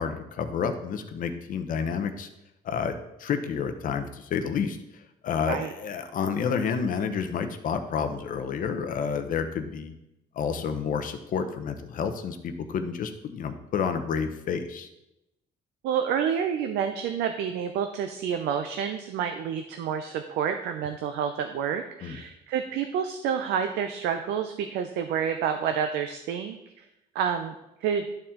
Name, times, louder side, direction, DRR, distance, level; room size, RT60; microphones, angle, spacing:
voice 1, 0.0-2.3 2.6-2.9 3.2-9.9 10.3-14.9 22.0-22.2, left 6 dB, 55° left, 7 dB, 0.9 m, -30 dB
voice 2, 15.8-26.8 27.1-27.5 27.8-28.1, right 8 dB, 80° right, 7 dB, 0.6 m, -29 dB
12.0 x 4.3 x 3.7 m, 0.89 s
cardioid pair, 110°, 17 cm